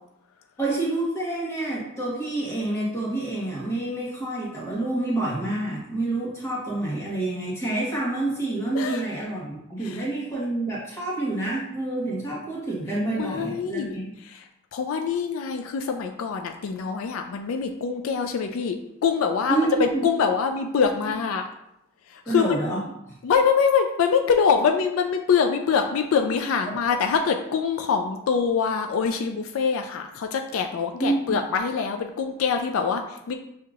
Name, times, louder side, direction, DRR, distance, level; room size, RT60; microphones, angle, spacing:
voice 1, 0.6-14.1 19.5-20.1 22.3-22.8 23.1-23.2 31.0-31.4, right 2 dB, 15° left, -5 dB, 1.2 m, -28 dB
voice 2, 13.1-14.0 14.3-14.4 14.7-21.4 22.1-22.6 23.2-33.3, left 6 dB, 75° left, 5 dB, 0.3 m, -24 dB
6.2 x 2.8 x 2.4 m, 0.81 s
head